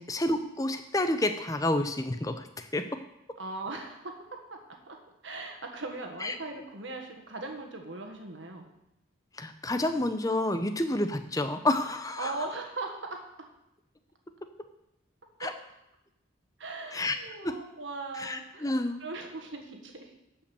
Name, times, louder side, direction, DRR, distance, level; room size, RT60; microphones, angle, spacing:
voice 1, 0.0-2.8 6.2-6.4 9.4-12.4 15.4-15.5 16.9-17.2 17.4-17.5 18.2-19.0, left 1 dB, 15° left, 8 dB, 0.7 m, -29 dB
voice 2, 3.4-4.2 4.5-4.6 4.9-5.0 5.2-8.7 12.2-13.3 15.4-15.5 16.6-18.7 19.0-20.1, right 3 dB, 65° right, 3 dB, 1.5 m, -39 dB
12.0 x 5.3 x 7.0 m, 0.86 s
head